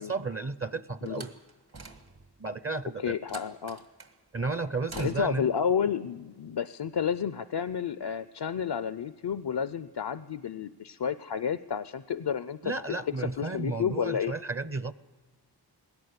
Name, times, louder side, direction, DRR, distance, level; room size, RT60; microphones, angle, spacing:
voice 1, 0.0-1.4 2.4-3.2 4.3-5.5 12.6-14.9, right 3 dB, 35° right, 14 dB, 0.6 m, -33 dB
Slam, 1.1-2.4 3.3-4.2 4.9-5.5, right 3 dB, 70° right, 2.1 m, -46 dB
voice 2, 3.0-3.8 4.9-12.7 13.2-14.3, left 7 dB, 80° left, 13 dB, 0.6 m, -31 dB
20.5 x 17.5 x 8.0 m, 1.3 s
wide cardioid pair, 50°, 39 cm